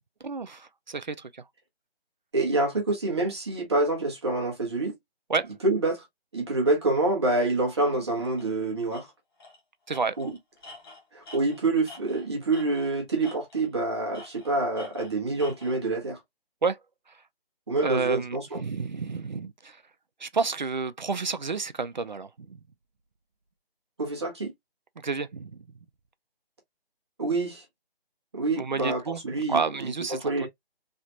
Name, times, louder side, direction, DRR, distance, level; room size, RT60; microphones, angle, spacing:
voice 1, 0.2-1.4 5.3-5.5 9.9-10.2 16.6-16.8 17.8-19.8 20.2-22.6 25.0-25.7 28.5-29.2 29.5-30.5, right 4 dB, 50° right, 0.4 m, -30 dB
voice 2, 2.3-4.9 5.6-6.0 6.3-9.1 10.2-10.3 11.1-16.2 17.7-18.6 24.0-24.5 27.2-27.6 28.3-30.5, right 2 dB, 25° right, 0.9 m, -27 dB
Tools, 8.4-8.5 8.9-9.0 9.4-9.6 9.9-12.9 13.2-13.7 14.1-15.8, left 3 dB, 25° left, 1.1 m, -47 dB
3.2 x 2.9 x 2.7 m
figure-of-eight pair, 165°, 31 cm